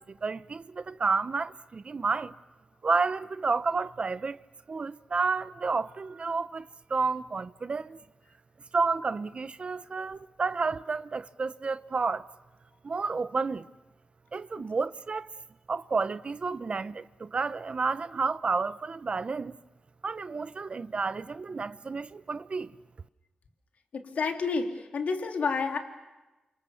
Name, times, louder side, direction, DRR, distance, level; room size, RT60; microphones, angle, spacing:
voice 1, 0.0-2.3 2.8-4.4 4.7-8.0 8.7-12.3 12.8-13.7 14.3-15.3 15.7-19.5 20.0-22.7, right 4 dB, 50° right, 0.8 m, -30 dB
voice 2, 23.9-25.8, left 4 dB, 75° left, 3.2 m, -29 dB
29.0 x 28.0 x 7.2 m
cardioid pair, 65°, 2 cm